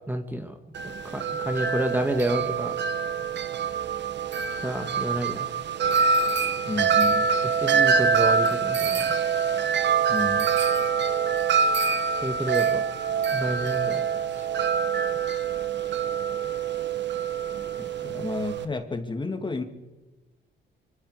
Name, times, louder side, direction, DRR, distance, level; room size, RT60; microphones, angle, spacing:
voice 1, 0.1-0.5 0.8-2.8 4.6-5.5 7.6-9.2 12.2-12.8 13.3-14.1 14.4-14.5, right 1 dB, 10° right, 6 dB, 1.8 m, -29 dB
Wind chime, 0.8-18.7, right 6 dB, 60° right, 1.6 m, -25 dB
voice 2, 6.7-7.3 10.1-10.5 18.0-19.6, left 3 dB, 25° left, 7 dB, 2.5 m, -31 dB
25.5 x 23.5 x 5.1 m, 1.2 s
cardioid pair, 90°, 20 cm